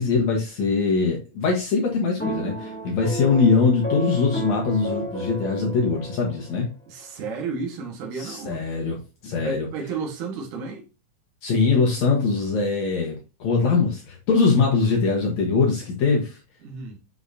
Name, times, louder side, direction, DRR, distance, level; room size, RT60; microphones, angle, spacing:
voice 1, 0.0-6.7 8.2-9.0 9.2-9.7 11.4-16.4, left 4 dB, 65° left, 2.6 m, -22 dB
sound 1, 2.2-6.7, right 1 dB, 5° left, 2.5 m, -32 dB
voice 2, 6.9-8.7 9.4-10.8 16.6-17.0, right 5 dB, 80° right, 3.0 m, -32 dB
8.1 x 5.9 x 2.7 m
omnidirectional pair, 3.6 m